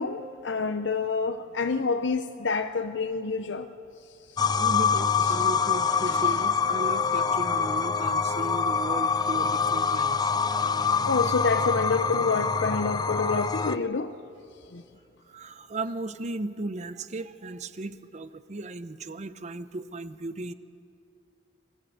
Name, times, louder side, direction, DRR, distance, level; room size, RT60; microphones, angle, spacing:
voice 1, 0.0-3.7 4.4-4.6 5.3-5.4 6.1-6.2 11.1-14.1 14.7-14.8, left 4 dB, 80° left, 7 dB, 0.7 m, -28 dB
sound 1, 4.4-13.8, left 5 dB, 20° left, 0.5 m, -25 dB
voice 2, 4.6-10.3 15.3-20.5, right 2 dB, 40° right, 13 dB, 0.7 m, -36 dB
25.0 x 14.5 x 8.3 m, 2.7 s
head